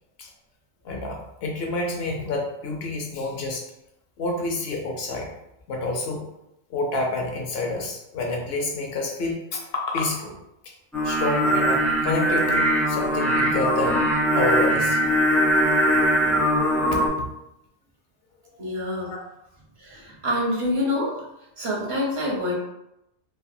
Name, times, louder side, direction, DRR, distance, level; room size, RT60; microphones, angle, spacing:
voice 1, 0.8-3.6 4.2-5.3 5.7-6.3 6.7-10.3 11.0-14.0 14.3-15.0 16.9-17.3 19.0-19.2, left 2 dB, 65° left, 0 dB, 0.8 m, -28 dB
Singing, 10.9-17.1, equal, ahead, 0.4 m, -21 dB
voice 2, 18.6-19.1 19.8-21.2 21.6-22.5, left 1 dB, 65° right, -3 dB, 1.1 m, -26 dB
3.3 x 2.2 x 2.6 m, 0.85 s
omnidirectional pair, 1.1 m